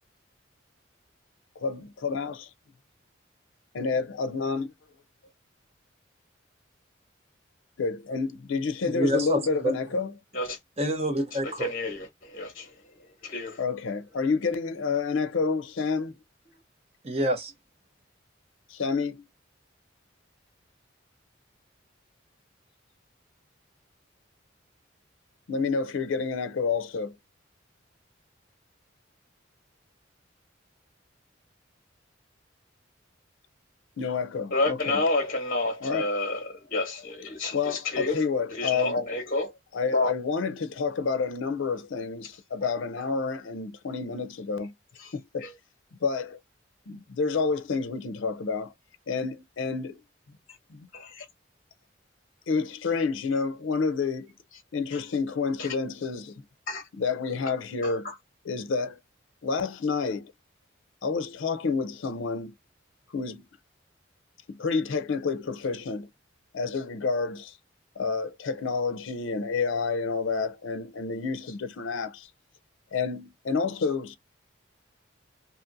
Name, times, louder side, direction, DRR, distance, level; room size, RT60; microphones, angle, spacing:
voice 1, 1.6-2.5 3.7-4.7 7.8-10.1 13.6-16.1 18.7-19.3 25.5-27.1 34.0-35.0 35.8-36.1 37.5-39.1 39.7-44.7 45.1-45.5 46.0-46.4 46.9-48.7 49.1-50.0 50.7-50.9 52.5-54.3 54.7-56.4 56.9-58.1 58.5-59.0 59.4-60.3 61.0-62.5 63.1-63.5 64.5-66.1 66.5-67.5 68.0-72.3 72.9-74.2, left 4 dB, 80° left, 0.5 m, -29 dB
voice 2, 8.8-9.7 10.8-11.7 17.0-17.5, equal, 30° right, 0.7 m, -27 dB
voice 3, 11.4-12.7 13.2-13.6 34.5-38.2 38.5-39.5 39.9-40.1 42.6-42.7 43.0-43.1 45.0-45.1 45.4-45.5 50.9-51.2 54.9-55.0 55.6-55.7 56.7-56.8 57.8-58.2, left 2 dB, 45° left, 1.1 m, -29 dB
2.8 x 2.5 x 2.5 m
head